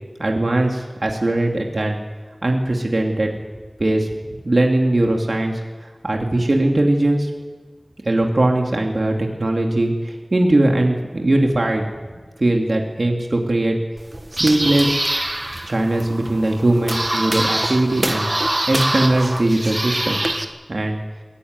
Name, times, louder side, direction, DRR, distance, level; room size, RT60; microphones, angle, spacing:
voice 1, 0.2-2.0 2.4-3.3 3.8-4.1 4.4-5.6 6.0-7.3 8.0-11.8 12.4-13.8 14.3-15.0 15.7-18.3 18.7-20.2 20.7-21.0, right 1 dB, 60° right, 1 dB, 2.5 m, -19 dB
sound 1, 14.0-20.4, right 1 dB, 35° right, 1.6 m, -24 dB
21.5 x 17.0 x 9.5 m, 1.4 s
wide cardioid pair, 55°, 0 cm